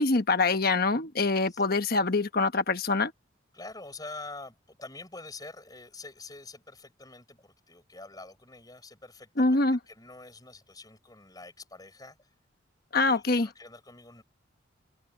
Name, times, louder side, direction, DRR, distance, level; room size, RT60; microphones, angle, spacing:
voice 1, 0.0-3.1 9.4-9.8 12.9-13.5, left 3 dB, 50° left, 1.3 m, -24 dB
voice 2, 3.5-12.3 13.1-14.2, left 3 dB, 20° left, 5.6 m, -46 dB
head